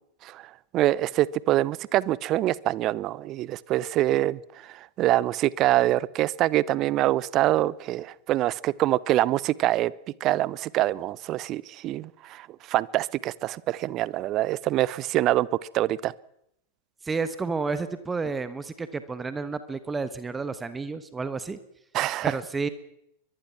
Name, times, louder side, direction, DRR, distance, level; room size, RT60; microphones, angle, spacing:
voice 1, 0.7-9.9 10.2-15.5 15.7-16.1 21.9-22.3, right 15 dB, 35° right, 0.8 m, -25 dB
voice 2, 17.0-21.6 22.2-22.7, right 4 dB, 15° right, 1.4 m, -31 dB
23.5 x 22.0 x 6.0 m
figure-of-eight pair, 90°, 0 cm